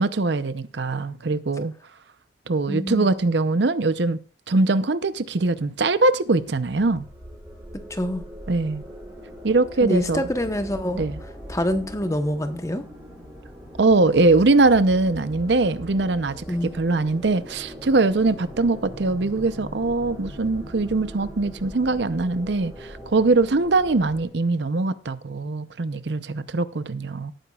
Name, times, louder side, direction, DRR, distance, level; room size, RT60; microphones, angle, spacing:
voice 1, 0.0-1.7 2.5-4.2 4.5-7.0 8.5-8.8 9.4-10.2 10.9-11.2 13.8-16.4 16.7-27.3, right 3 dB, 75° right, 0.7 m, -22 dB
voice 2, 2.7-3.1 7.9-8.2 9.8-11.1 11.5-12.8 16.5-16.7, equal, 15° left, 1.0 m, -26 dB
sound 1, 6.2-24.3, equal, 15° right, 4.0 m, -41 dB
18.0 x 9.1 x 2.4 m
head